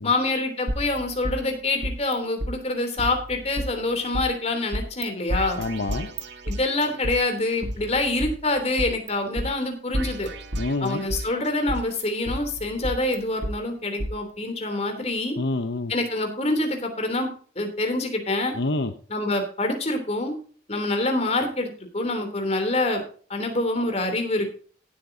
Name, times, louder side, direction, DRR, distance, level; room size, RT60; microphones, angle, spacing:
voice 1, 0.0-5.6 6.5-10.3 10.8-15.3 15.9-17.3 17.5-18.5 19.1-20.4 20.7-23.0 23.3-24.6, left 2 dB, 35° left, 4 dB, 3.2 m, -26 dB
sound 1, 0.7-2.1 2.4-2.5 3.0-4.2 4.7-5.0 5.3-7.2 7.6-9.1 9.4-9.5 9.9-11.3 11.7-13.5 14.0-14.1, equal, 70° right, 1.7 m, -31 dB
voice 2, 5.6-6.1 10.5-11.0 15.4-15.9 18.5-18.9, left 2 dB, 65° left, 8 dB, 0.9 m, -27 dB
17.5 x 8.6 x 2.8 m, 0.44 s
head